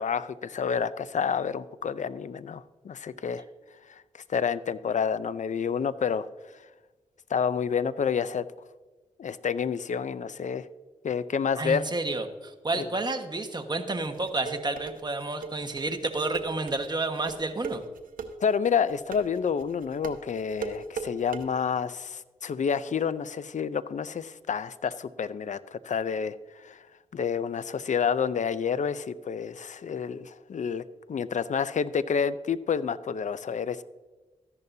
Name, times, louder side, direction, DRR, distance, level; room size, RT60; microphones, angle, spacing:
voice 1, 0.0-3.4 4.3-6.3 7.3-8.4 9.2-10.7 11.0-11.9 12.7-12.8 18.4-26.4 26.6-26.8 27.1-30.8 31.1-33.8, left 6 dB, 60° left, 15 dB, 0.6 m, -29 dB
voice 2, 11.6-17.8, right 2 dB, 30° right, 5 dB, 1.4 m, -30 dB
sound 1, 14.0-21.4, right 5 dB, 85° right, 0.9 m, -37 dB
14.0 x 11.0 x 2.7 m, 1.2 s
cardioid pair, 50°, 14 cm